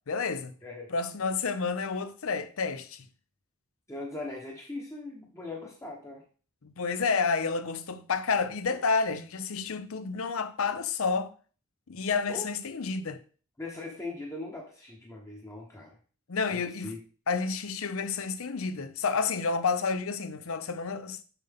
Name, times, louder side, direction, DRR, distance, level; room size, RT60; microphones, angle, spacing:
voice 1, 0.1-0.5 0.9-3.0 6.6-11.3 11.9-13.2 16.3-16.9 17.3-21.2, left 4 dB, 70° left, 0.6 m, -30 dB
voice 2, 3.9-6.2 12.3-12.5 13.6-16.0 16.5-17.0, left 2 dB, 15° left, 1.0 m, -40 dB
7.1 x 5.5 x 3.6 m
head